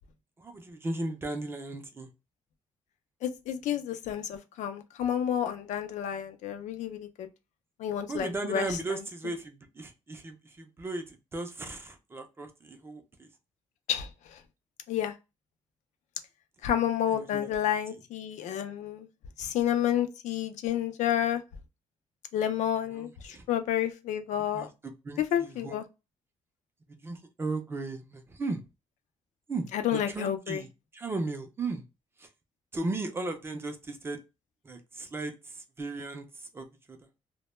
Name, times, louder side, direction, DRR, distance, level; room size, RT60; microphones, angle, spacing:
voice 1, 0.4-2.1 8.1-13.3 17.1-17.5 22.9-23.4 24.5-24.7 25.0-25.8 27.0-28.6 29.5-30.7 30.9-31.8 32.2-32.3 32.7-34.2 34.6-35.3 35.8-36.3 36.5-37.0, right 2 dB, 20° right, 0.4 m, -36 dB
voice 2, 3.2-7.3 7.8-9.0 13.9-14.4 14.9-15.1 16.6-19.1 19.4-21.4 22.3-24.7 25.2-25.8 29.7-30.6, left 10 dB, 80° left, 0.4 m, -30 dB
2.1 x 2.1 x 3.0 m
cardioid pair, 165°, 12 cm